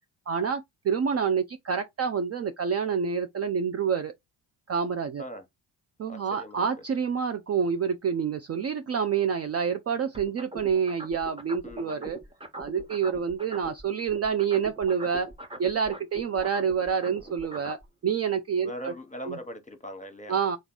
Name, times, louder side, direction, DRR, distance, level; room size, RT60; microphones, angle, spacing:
voice 1, 0.3-4.1 4.7-5.2 6.0-12.2 12.5-15.3 15.6-18.9 19.3-19.4 20.3-20.6, right 6 dB, 35° right, 0.5 m, -28 dB
voice 2, 6.1-6.6 11.6-12.2 16.9-17.3 18.6-20.4, equal, 15° left, 1.1 m, -41 dB
sound 1, 10.1-13.8 14.1-17.8, right 2 dB, 10° right, 1.0 m, -41 dB
3.3 x 2.5 x 3.9 m
hypercardioid pair, 55°, 46 cm